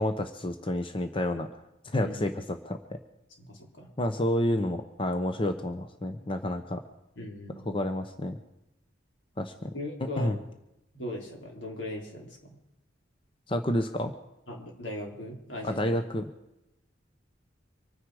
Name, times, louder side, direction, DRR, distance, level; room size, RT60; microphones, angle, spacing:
voice 1, 0.0-1.5 1.9-2.8 4.0-6.8 7.7-8.4 9.4-9.7 10.2-10.4 13.5-14.1 15.6-16.2, left 1 dB, 30° left, 7 dB, 0.9 m, -29 dB
voice 2, 3.4-3.9 7.2-7.7 9.7-10.5 10.9-12.6 14.5-15.9, left 1 dB, 80° left, 0 dB, 3.8 m, -39 dB
25.0 x 9.8 x 4.9 m, 0.89 s
head